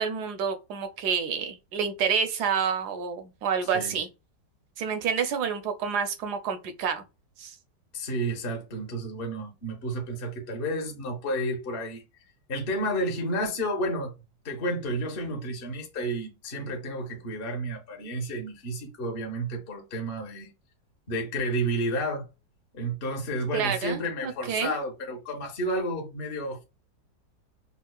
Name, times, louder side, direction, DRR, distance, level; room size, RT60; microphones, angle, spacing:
voice 1, 0.0-4.1 4.8-7.0 7.4-7.6 23.5-24.7, right 6 dB, 70° right, 1.1 m, -28 dB
voice 2, 7.9-12.0 12.5-14.1 14.4-20.5 21.1-22.2 22.7-26.6, right 1 dB, 45° left, 0.7 m, -31 dB
5.4 x 2.0 x 2.2 m
omnidirectional pair, 1.9 m